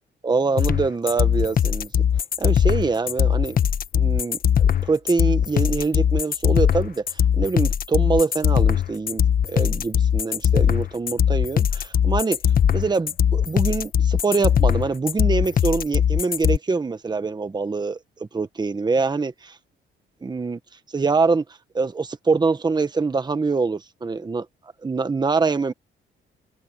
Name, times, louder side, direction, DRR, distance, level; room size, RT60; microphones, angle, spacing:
voice 1, 0.2-1.9 2.4-3.6 3.9-12.4 12.7-19.6 20.2-20.6 20.9-21.4 21.7-24.5 24.8-25.7, right 4 dB, 20° right, 1.2 m, -24 dB
sound 1, 0.6-16.6, left 8 dB, 45° left, 1.0 m, -20 dB
cardioid pair, 120°, 20 cm